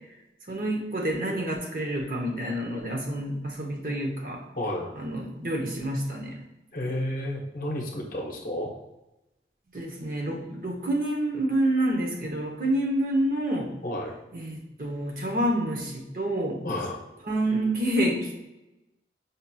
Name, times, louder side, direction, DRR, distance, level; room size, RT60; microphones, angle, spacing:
voice 1, 0.5-4.4 5.0-6.4 9.7-13.7 14.3-16.6 17.3-18.4, right 1 dB, 50° right, 0 dB, 0.7 m, -28 dB
voice 2, 4.6-4.9 6.7-8.7 13.8-14.1 16.6-17.0, left 1 dB, 50° left, 0 dB, 0.7 m, -31 dB
5.2 x 2.8 x 2.2 m, 0.96 s
head